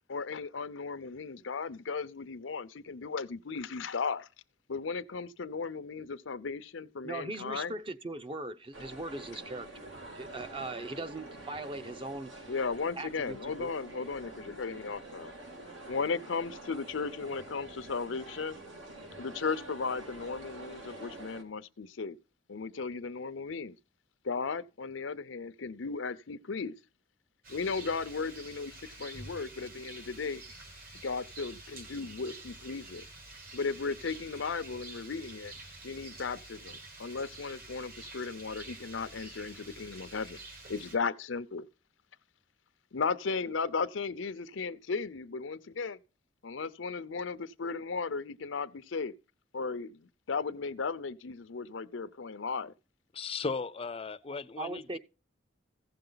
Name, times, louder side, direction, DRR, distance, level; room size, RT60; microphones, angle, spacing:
voice 1, 0.1-4.3 4.7-7.7 12.5-15.3 15.9-18.5 19.2-22.2 22.5-23.7 24.3-26.7 27.5-28.7 29.0-30.4 31.0-33.0 33.5-35.5 35.8-40.4 40.7-41.6 42.9-46.0 46.4-49.1 49.5-49.9 50.3-52.7, left 4 dB, 90° left, 0.7 m, -36 dB
voice 2, 7.0-12.5 13.0-13.7 54.6-55.0, right 2 dB, 30° right, 0.7 m, -40 dB
sound 1, 8.7-21.4, right 2 dB, 80° right, 2.3 m, -47 dB
Rain, 27.4-41.0, right 2 dB, 50° right, 2.0 m, -48 dB
voice 3, 53.1-55.0, left 4 dB, 30° left, 0.5 m, -36 dB
15.5 x 6.7 x 3.9 m
head